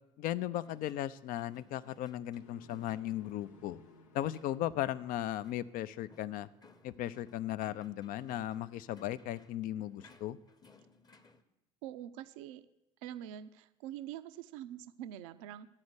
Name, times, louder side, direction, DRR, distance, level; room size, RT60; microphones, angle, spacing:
voice 1, 0.2-3.8 4.1-6.5 6.8-10.4, left 13 dB, 55° left, 16 dB, 0.5 m, -36 dB
sound 1, 0.6-11.4, left 3 dB, 25° left, 0.9 m, -63 dB
sound 2, 2.4-8.4, left 3 dB, 90° left, 0.9 m, -62 dB
voice 2, 11.8-12.6 13.0-15.7, right 11 dB, 75° right, 11 dB, 0.5 m, -45 dB
11.5 x 4.4 x 8.0 m, 0.91 s
hypercardioid pair, 75°, 17 cm